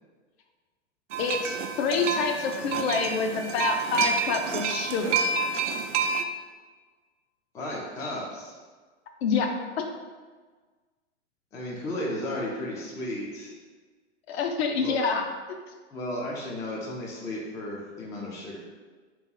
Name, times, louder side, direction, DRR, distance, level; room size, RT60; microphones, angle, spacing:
sound 1, 1.1-6.2, right 5 dB, 85° right, 0.5 m, -29 dB
voice 1, 1.2-5.2 9.2-9.9 14.3-15.2, left 5 dB, 60° left, 4 dB, 0.7 m, -27 dB
voice 2, 7.5-8.5 11.5-13.5 14.8-15.0 15.9-18.6, left 1 dB, 10° left, -3 dB, 0.4 m, -34 dB
3.5 x 3.0 x 3.8 m, 1.4 s
hypercardioid pair, 125°, 35 cm